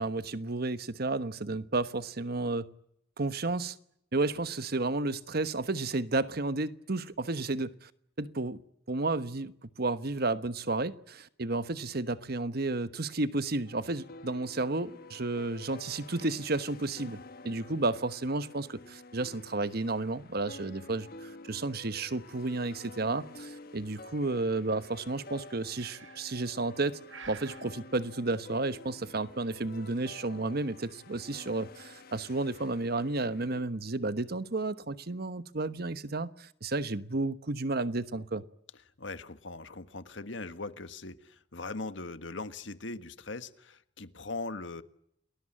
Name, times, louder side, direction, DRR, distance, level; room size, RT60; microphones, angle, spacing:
voice 1, 0.0-2.7 3.2-3.8 4.1-7.9 8.2-8.6 8.9-17.2 17.4-27.0 27.3-38.4, right 2 dB, 55° right, 1.2 m, -32 dB
sound 1, 13.6-33.6, left 2 dB, 55° left, 1.4 m, -50 dB
Breathing, 25.8-26.4 27.1-27.7, right 7 dB, 80° right, 1.2 m, -48 dB
voice 2, 39.0-44.8, left 3 dB, 80° left, 1.6 m, -40 dB
29.5 x 20.0 x 8.8 m
head